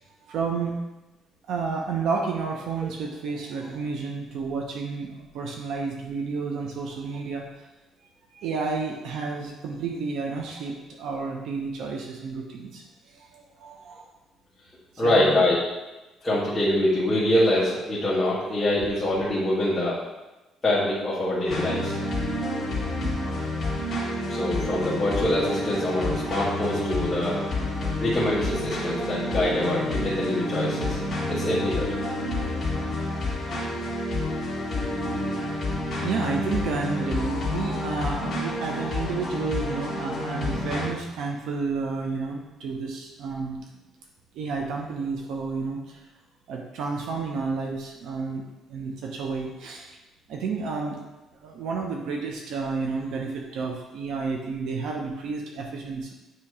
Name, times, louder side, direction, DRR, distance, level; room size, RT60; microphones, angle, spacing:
voice 1, 0.2-0.7 1.5-7.7 8.3-14.1 15.0-15.4 36.0-43.6 44.3-46.0 46.5-48.4 48.7-50.0 50.3-51.0 51.4-56.1, right 4 dB, 70° right, 1 dB, 0.8 m, -31 dB
voice 2, 15.0-15.6 16.2-20.0 20.6-22.0 24.3-27.4 28.0-31.0 31.3-31.9, left 1 dB, 15° left, -10 dB, 1.5 m, -24 dB
sound 1, 21.5-40.9, left 1 dB, 30° left, 1.9 m, -29 dB
8.7 x 2.9 x 4.8 m, 1.0 s
cardioid pair, 165°, 0 cm